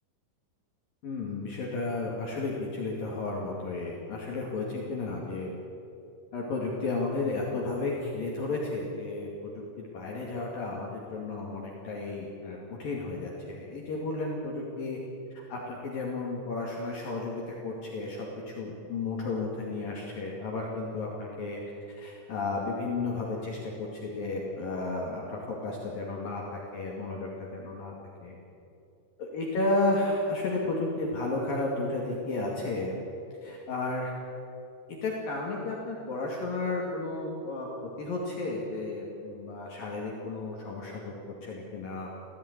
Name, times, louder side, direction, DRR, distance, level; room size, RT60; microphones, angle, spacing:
voice 1, 1.0-5.5 6.3-9.5 9.8-15.0 15.3-21.6 21.9-27.9 28.2-28.4 29.2-32.9 33.4-34.1 35.0-37.7 38.0-41.1 41.4-42.1, left 2 dB, 55° left, -2 dB, 3.7 m, -33 dB
17.5 x 16.0 x 9.8 m, 2.7 s
omnidirectional pair, 5.4 m